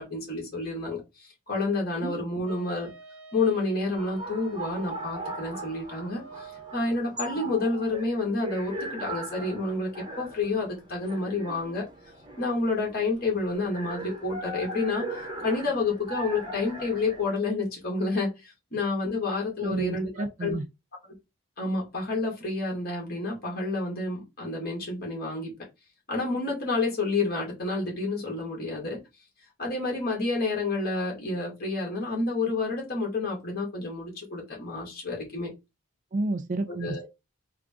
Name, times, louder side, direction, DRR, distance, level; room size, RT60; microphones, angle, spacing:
voice 1, 0.0-2.9 3.3-9.9 10.2-11.9 12.4-20.6 21.6-25.5 26.1-29.0 29.6-35.5 36.7-37.1, left 3 dB, 45° left, 1.7 m, -29 dB
Wind instrument woodwind instrument, 2.4-6.9, right 5 dB, 90° right, 1.0 m, -47 dB
sound 1, 4.0-17.2, right 1 dB, 20° right, 0.9 m, -39 dB
voice 2, 19.6-20.6 36.1-37.1, right 2 dB, 35° right, 0.3 m, -31 dB
3.7 x 2.3 x 3.6 m
head